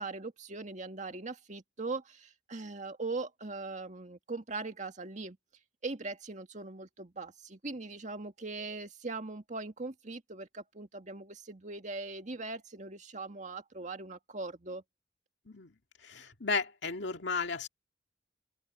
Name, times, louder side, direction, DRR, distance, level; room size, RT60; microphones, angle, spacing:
voice 1, 0.0-5.4 5.8-14.8, right 3 dB, 45° right, 1.9 m, -40 dB
voice 2, 16.1-17.7, left 4 dB, 85° left, 2.1 m, -34 dB
open air
head